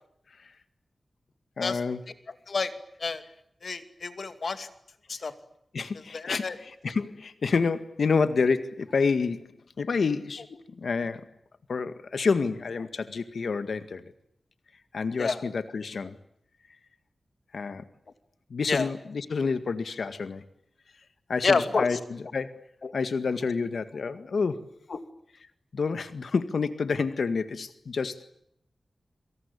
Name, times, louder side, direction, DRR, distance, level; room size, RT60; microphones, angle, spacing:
voice 1, 1.6-2.0 5.7-9.5 9.8-11.3 11.7-14.1 14.9-16.2 17.5-17.8 18.5-20.4 21.3-22.6 22.9-24.7 25.7-28.3, left 4 dB, 85° left, 11 dB, 1.9 m, -28 dB
voice 2, 3.6-4.7 5.1-5.3 6.1-6.5 15.2-15.4 18.7-18.9 21.4-21.9 24.9-25.0, left 4 dB, 65° left, 10 dB, 2.5 m, -28 dB
27.0 x 25.5 x 8.2 m, 0.74 s
wide cardioid pair, 110°, 0 cm